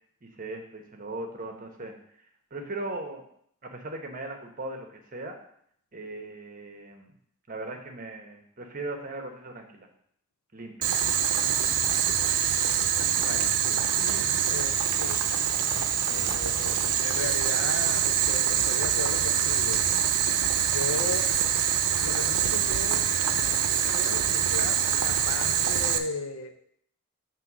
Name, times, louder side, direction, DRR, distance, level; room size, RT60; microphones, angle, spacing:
voice 1, 0.2-1.9 2.5-3.2 3.6-5.4 5.9-7.1 7.5-9.9 10.5-10.9 16.2-16.4, right 2 dB, 35° right, 4 dB, 1.0 m, -38 dB
Boiling, 10.8-26.0, right 9 dB, 85° right, 0.6 m, -25 dB
voice 2, 13.2-15.2 16.1-19.8 20.7-21.3 22.0-23.0 23.3-26.5, left 3 dB, 75° left, 8 dB, 0.7 m, -36 dB
7.8 x 3.1 x 6.0 m, 0.67 s
head